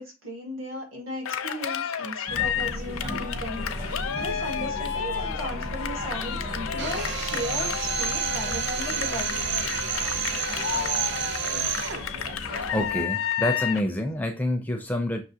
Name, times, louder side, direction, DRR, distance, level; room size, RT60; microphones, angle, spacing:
voice 1, 0.0-9.5, equal, 70° right, 2.1 m, -36 dB
Cheering, 1.3-13.9, left 8 dB, 80° left, 0.5 m, -32 dB
sound 1, 2.3-13.0, equal, 30° right, 0.9 m, -36 dB
Drill, 6.8-12.1, right 7 dB, 55° right, 0.6 m, -30 dB
voice 2, 12.7-15.2, left 1 dB, 10° left, 0.4 m, -27 dB
5.9 x 2.9 x 2.7 m
head